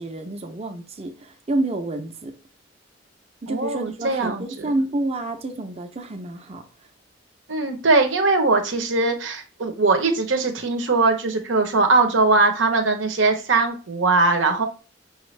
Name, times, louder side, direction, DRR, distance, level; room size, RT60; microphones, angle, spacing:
voice 1, 0.0-2.3 3.4-6.6, right 2 dB, 35° right, 0.7 m, -28 dB
voice 2, 3.5-4.7 7.5-14.7, right 3 dB, 85° right, 0.9 m, -20 dB
5.6 x 2.6 x 3.2 m
head